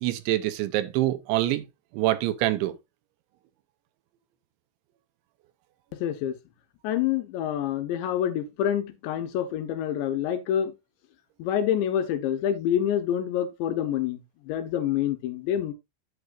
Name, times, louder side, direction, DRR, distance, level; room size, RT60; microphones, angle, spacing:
voice 1, 0.0-1.7 1.9-2.8, right 15 dB, 80° right, 3.0 m, -25 dB
voice 2, 6.0-6.3 6.8-10.7 11.4-14.2 14.5-15.7, left 10 dB, 75° left, 3.2 m, -27 dB
9.4 x 8.6 x 2.6 m
omnidirectional pair, 5.5 m